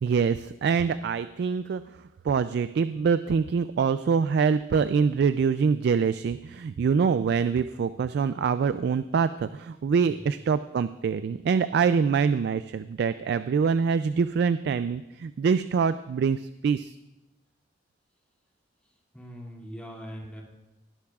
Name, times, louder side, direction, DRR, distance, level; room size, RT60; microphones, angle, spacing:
voice 1, 0.0-1.8 2.2-17.0, right 6 dB, 65° right, 13 dB, 0.3 m, -25 dB
voice 2, 10.0-10.5 18.8-20.4, equal, 5° left, -2 dB, 2.3 m, -42 dB
18.5 x 11.5 x 2.4 m, 0.98 s
head